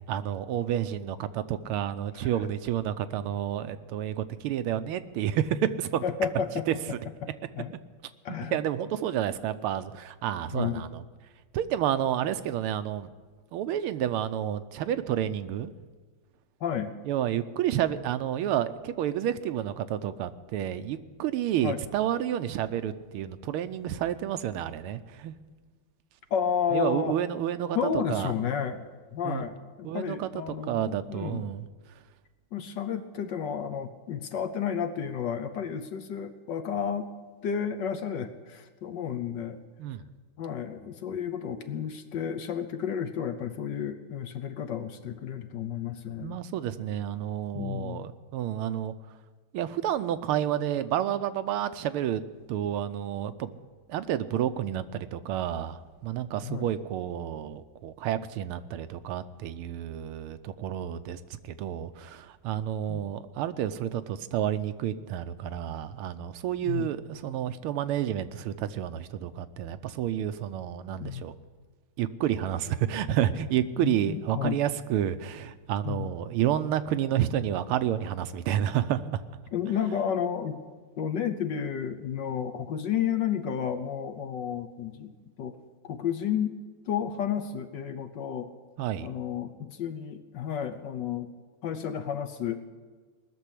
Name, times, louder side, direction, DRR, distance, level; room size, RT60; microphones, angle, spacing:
voice 1, 0.1-6.0 8.5-11.0 11.5-13.1 13.5-15.7 17.1-25.4 26.7-27.8 28.1-28.3 29.2-29.4 29.8-30.3 30.7-31.6 39.8-40.0 46.2-48.9 49.5-52.2 52.5-53.5 53.9-71.3 72.0-79.2 88.8-89.1, right 11 dB, 80° right, 11 dB, 1.6 m, -30 dB
voice 2, 6.0-7.0 7.2-7.3 7.6-7.7 8.2-8.6 10.5-10.8 16.6-16.9 21.6-21.8 26.3-27.2 27.7-31.5 32.5-37.1 37.4-39.6 40.4-46.4 47.5-48.1 56.4-56.7 62.9-63.1 66.6-66.9 71.0-71.2 73.8-74.6 75.8-76.1 79.5-80.6 81.0-85.6 85.9-86.5 86.9-88.5 89.0-91.3 91.6-92.6, left 8 dB, 65° left, 9 dB, 1.3 m, -32 dB
19.5 x 7.0 x 10.0 m, 1.4 s
omnidirectional pair, 2.4 m